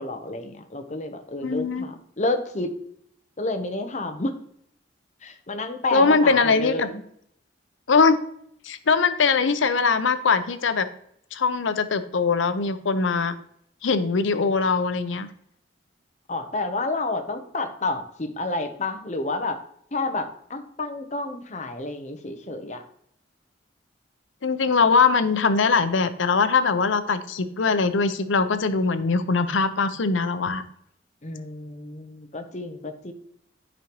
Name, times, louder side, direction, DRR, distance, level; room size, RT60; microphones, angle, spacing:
voice 1, 0.0-2.7 3.4-4.3 5.2-7.0 16.3-19.6 19.9-22.8 31.2-33.1, left 2 dB, 40° left, 7 dB, 0.8 m, -30 dB
voice 2, 1.4-1.9 5.9-6.9 7.9-8.2 8.6-10.9 11.3-13.3 13.8-15.3 24.4-30.6, left 4 dB, 90° left, 11 dB, 0.7 m, -21 dB
10.0 x 5.2 x 3.0 m, 0.68 s
head